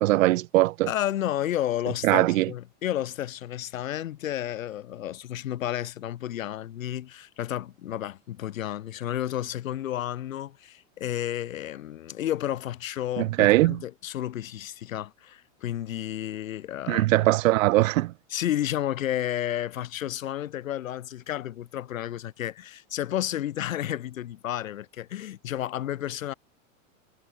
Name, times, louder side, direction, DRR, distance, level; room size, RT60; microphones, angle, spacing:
voice 1, 0.0-0.9 2.0-2.5 13.2-13.8 16.9-18.1, right 17 dB, 80° right, 0.5 m, -21 dB
voice 2, 0.9-17.1 18.3-26.3, left 12 dB, 85° left, 1.6 m, -31 dB
hypercardioid pair, 120°, 39 cm